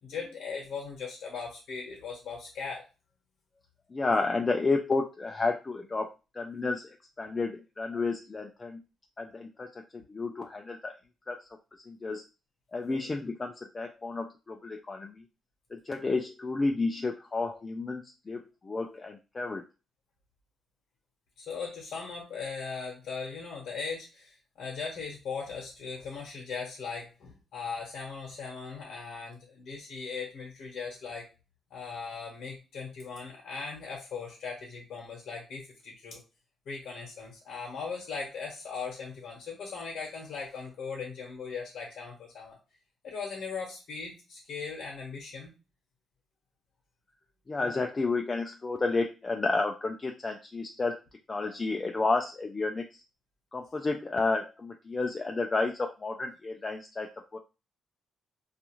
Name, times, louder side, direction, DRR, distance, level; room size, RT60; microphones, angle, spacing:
voice 1, 0.0-2.8 21.4-31.3 31.7-36.2 36.7-42.6 43.0-45.5, left 5 dB, 75° left, -2 dB, 0.9 m, -39 dB
voice 2, 3.9-6.1 6.3-8.8 9.2-10.9 11.3-11.5 11.9-12.2 12.7-15.2 15.7-19.6 47.5-51.0 51.3-53.0 53.5-57.4, left 3 dB, 30° left, 3 dB, 0.3 m, -31 dB
2.4 x 2.4 x 2.9 m, 0.29 s
cardioid pair, 100°, 0 cm